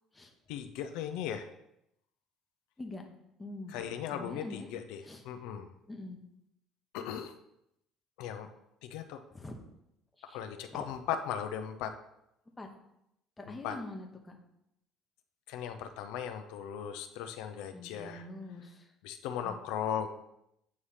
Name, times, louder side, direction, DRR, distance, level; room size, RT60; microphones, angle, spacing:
voice 1, 0.5-1.5 3.7-5.7 6.9-7.3 8.2-8.5 8.8-9.2 10.3-11.9 13.6-13.8 15.5-18.3 19.0-20.1, left 9 dB, 85° left, 7 dB, 0.5 m, -37 dB
voice 2, 3.4-3.7 4.1-4.7 5.0-5.2 5.9-6.2 9.3-9.6 10.2-10.4 10.7-10.8 12.6-12.7 13.4-14.4 17.7-18.9 19.4-19.6, left 2 dB, 10° left, 2 dB, 0.9 m, -44 dB
8.4 x 3.3 x 5.6 m, 0.81 s
cardioid pair, 135°, 0 cm